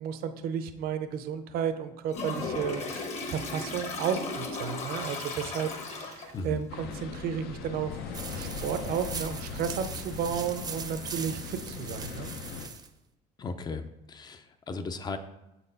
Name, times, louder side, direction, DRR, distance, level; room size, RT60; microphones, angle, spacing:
voice 1, 0.0-7.9 8.3-12.3, right 8 dB, 65° right, 9 dB, 0.7 m, -33 dB
Toilet flush, 2.1-6.5, left 3 dB, 40° left, 1.1 m, -36 dB
sound 1, 6.7-12.7, left 5 dB, 75° left, 0.8 m, -39 dB
sound 2, 8.1-12.9, right 5 dB, 25° right, 0.6 m, -41 dB
voice 2, 13.4-15.2, left 4 dB, 25° left, 9 dB, 0.5 m, -36 dB
7.0 x 4.3 x 5.5 m, 0.92 s
cardioid pair, 155°, 17 cm